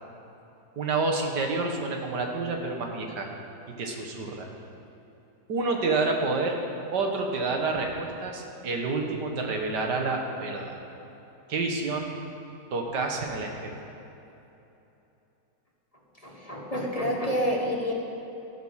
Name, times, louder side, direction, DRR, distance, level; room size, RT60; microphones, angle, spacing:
voice 1, 0.8-3.3 3.8-4.5 5.5-6.6 6.9-10.8 11.5-12.1 12.7-13.7, right 3 dB, 75° right, 2 dB, 2.0 m, -28 dB
voice 2, 16.2-17.9, equal, 25° left, -2 dB, 1.4 m, -28 dB
14.5 x 11.0 x 5.7 m, 3.0 s
omnidirectional pair, 1.8 m